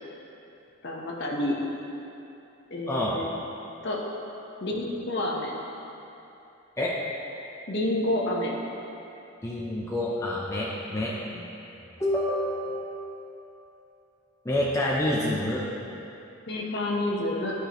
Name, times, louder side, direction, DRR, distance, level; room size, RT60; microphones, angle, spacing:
voice 1, 0.8-1.5 2.7-3.3 3.8-4.0 4.6-5.5 7.7-8.5 16.5-17.5, left 1 dB, 50° left, -2 dB, 1.0 m, -28 dB
voice 2, 2.9-3.2 6.8-6.9 9.4-11.5 12.0-12.9 14.4-15.6, left 1 dB, 15° left, -6 dB, 0.6 m, -28 dB
13.5 x 4.9 x 3.0 m, 2.9 s
head